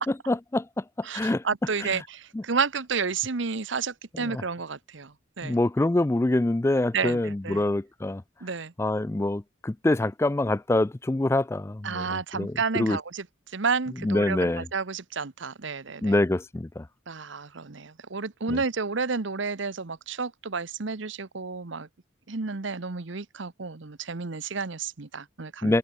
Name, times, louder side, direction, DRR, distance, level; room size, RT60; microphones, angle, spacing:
voice 1, 0.3-0.8 1.1-1.4 2.3-2.4 4.3-4.4 5.4-8.2 8.8-13.0 14.0-14.7 16.0-16.8 18.5-18.6 25.6-25.8, left 2 dB, 15° left, 0.3 m, -25 dB
voice 2, 1.0-5.6 6.9-7.6 8.4-8.7 11.8-13.3 13.5-16.1 17.1-21.9 22.3-25.8, right 5 dB, 65° right, 1.0 m, -31 dB
head